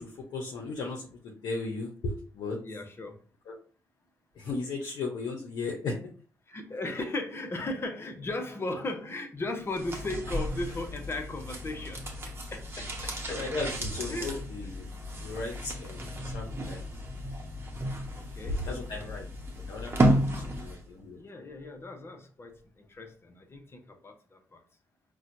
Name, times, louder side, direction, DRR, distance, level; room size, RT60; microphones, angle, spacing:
voice 1, 0.0-2.6 3.5-3.6 4.4-6.0 13.3-14.9 15.2-16.8 18.6-19.3 19.7-21.2, left 3 dB, 75° left, 0 dB, 0.7 m, -36 dB
voice 2, 2.6-3.2 6.5-12.1 12.5-13.7 14.1-14.4 18.1-19.1 20.3-20.6 21.1-24.6, left 2 dB, 35° left, 5 dB, 0.8 m, -37 dB
sound 1, 9.7-20.9 21.2-21.3, right 1 dB, 35° right, 0.9 m, -32 dB
4.2 x 2.2 x 2.6 m, 0.40 s
supercardioid pair, 65°, 7 cm